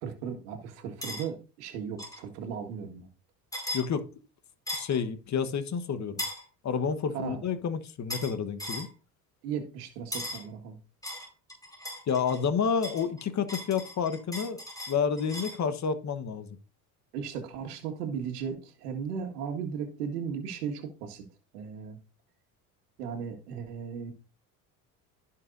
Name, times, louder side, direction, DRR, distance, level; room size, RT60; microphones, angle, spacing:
voice 1, 0.0-3.1 7.1-7.4 9.4-10.8 17.1-21.3 21.5-22.0 23.0-24.1, right 7 dB, 80° right, 1.9 m, -36 dB
sound 1, 1.0-1.2 2.0-2.2 3.5-3.9 4.7-5.0 6.2-6.4 8.1-8.3 8.6-8.9 10.1-10.5 11.0-12.4 12.8-15.6, left 1 dB, 10° left, 4.5 m, -37 dB
voice 2, 3.7-4.1 4.7-6.2 6.6-8.9 12.1-14.6 14.9-16.5, left 6 dB, 35° left, 1.2 m, -29 dB
15.5 x 5.7 x 2.6 m
hypercardioid pair, 70°, 46 cm